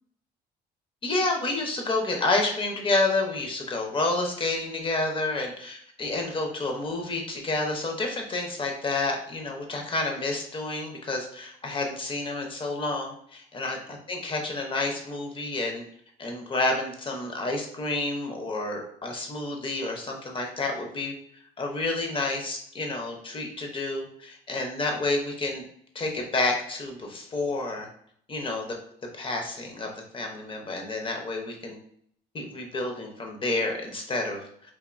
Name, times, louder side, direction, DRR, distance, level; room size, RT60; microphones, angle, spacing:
voice 1, 1.0-13.8 14.1-15.8 16.2-21.1 21.6-25.6 25.9-27.9 28.3-28.7 29.2-31.8 32.3-34.4, left 2 dB, 30° left, 2 dB, 0.7 m, -29 dB
3.5 x 2.5 x 2.5 m, 0.67 s
cardioid pair, 110°, 17 cm